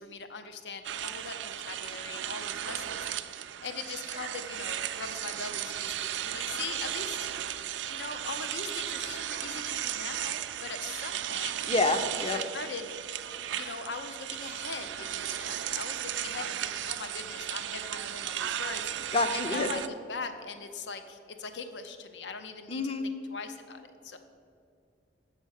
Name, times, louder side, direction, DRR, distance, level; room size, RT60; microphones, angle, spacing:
voice 1, 0.0-7.3 7.9-11.6 12.1-12.9 13.5-19.1 19.3-24.2, left 4 dB, 70° left, 8 dB, 0.7 m, -41 dB
sound 1, 0.8-19.9, right 11 dB, 85° right, 0.4 m, -35 dB
voice 2, 11.7-12.4 19.1-19.7 22.7-23.0, left 3 dB, 30° left, 8 dB, 0.6 m, -27 dB
8.1 x 6.5 x 6.5 m, 2.4 s
head